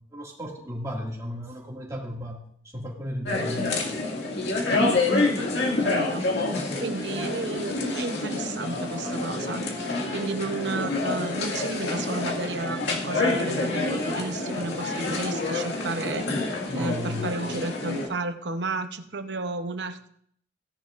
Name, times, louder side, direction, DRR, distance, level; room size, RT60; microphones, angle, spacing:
voice 1, 0.1-2.4 2.7-3.8 16.7-17.3, left 1 dB, 20° right, -1 dB, 2.1 m, -34 dB
sound 1, 3.3-18.1, left 2 dB, 75° left, 2.1 m, -27 dB
voice 2, 5.6-6.3 6.8-9.6 10.1-16.3 16.7-20.1, right 3 dB, 75° right, 9 dB, 0.8 m, -32 dB
17.0 x 10.5 x 2.5 m, 0.65 s
head